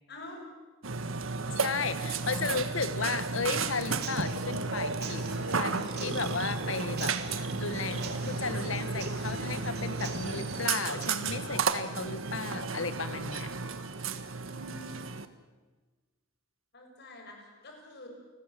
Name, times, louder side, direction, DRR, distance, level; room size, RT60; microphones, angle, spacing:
voice 1, 0.1-0.4 1.8-2.1 14.5-15.1 16.7-18.1, left 1 dB, 55° left, 2 dB, 7.0 m, -47 dB
Burping eructation, 0.8-15.3, right 4 dB, 85° right, 1.6 m, -33 dB
voice 2, 1.5-13.5, left 4 dB, 80° left, 11 dB, 1.8 m, -35 dB
Human voice / Acoustic guitar / Drum, 3.5-11.5, right 2 dB, 55° right, 3.6 m, -42 dB
29.5 x 20.0 x 7.7 m, 1.3 s
head